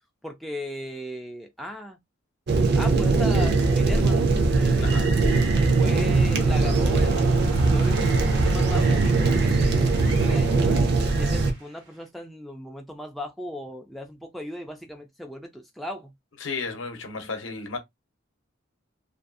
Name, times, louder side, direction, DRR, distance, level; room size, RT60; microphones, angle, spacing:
voice 1, 0.2-2.0 2.8-5.1 5.6-10.8 11.1-16.1, left 1 dB, ahead, 0.3 m, -37 dB
sound 1, 2.5-11.5, right 3 dB, 55° right, 0.5 m, -21 dB
voice 2, 4.8-5.1 16.4-17.8, left 4 dB, 70° left, 0.7 m, -33 dB
sound 2, 5.2-12.1, right 3 dB, 90° right, 1.0 m, -41 dB
2.5 x 2.3 x 2.4 m
head